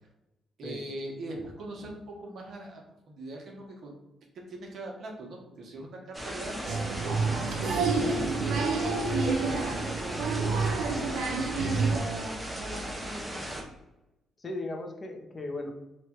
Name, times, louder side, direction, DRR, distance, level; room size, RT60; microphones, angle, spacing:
voice 1, 0.6-3.9 4.5-6.8 7.6-8.7 9.0-10.5 11.1-13.6, right 2 dB, 60° right, 0 dB, 1.0 m, -41 dB
sound 1, 6.1-13.6, right 1 dB, 10° right, 0.7 m, -37 dB
Applause, 6.7-12.0, right 4 dB, 80° right, 0.6 m, -28 dB
voice 2, 14.4-15.7, left 2 dB, 35° left, 2 dB, 0.8 m, -37 dB
3.2 x 2.4 x 4.4 m, 0.95 s
cardioid pair, 90°, 0 cm